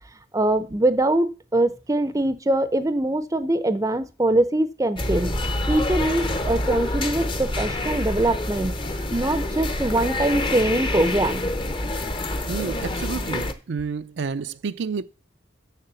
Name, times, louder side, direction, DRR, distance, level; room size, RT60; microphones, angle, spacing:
voice 1, 0.3-5.3 5.7-8.7 9.1-11.5, right 1 dB, 20° right, 0.6 m, -23 dB
sound 1, 4.9-13.5, left 1 dB, 25° left, 0.8 m, -27 dB
voice 2, 12.5-15.0, right 5 dB, 70° right, 0.5 m, -30 dB
6.8 x 6.6 x 6.9 m
head